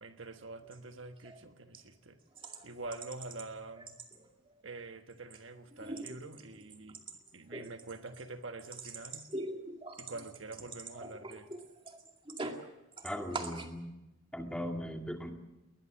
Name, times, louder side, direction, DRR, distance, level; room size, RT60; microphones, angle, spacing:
voice 1, 0.0-2.2 2.6-4.0 4.6-7.0 7.3-9.3 10.0-11.5, right 3 dB, 60° right, 1.4 m, -46 dB
sound 1, 0.6-0.8 1.2-1.4 1.7-1.8 2.3-3.5 3.8-4.5 4.9-5.4 5.7-12.7 12.9-13.7, right 2 dB, 25° right, 2.2 m, -44 dB
voice 2, 13.0-13.8 14.3-15.3, equal, 5° left, 2.2 m, -38 dB
21.5 x 20.5 x 7.5 m
head